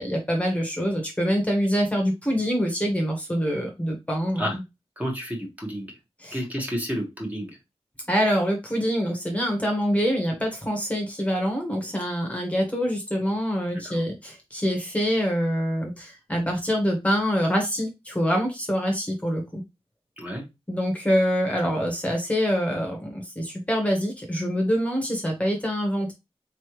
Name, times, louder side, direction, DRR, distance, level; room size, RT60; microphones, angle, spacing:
voice 1, 0.0-4.4 6.2-6.4 8.1-19.6 20.7-26.1, equal, 15° left, 1 dB, 1.2 m, -25 dB
voice 2, 5.0-6.0 6.3-7.6 13.8-14.0 20.2-20.4, equal, 15° right, 0 dB, 1.4 m, -31 dB
4.1 x 3.3 x 3.1 m, 0.22 s
wide cardioid pair, 105°, 10 cm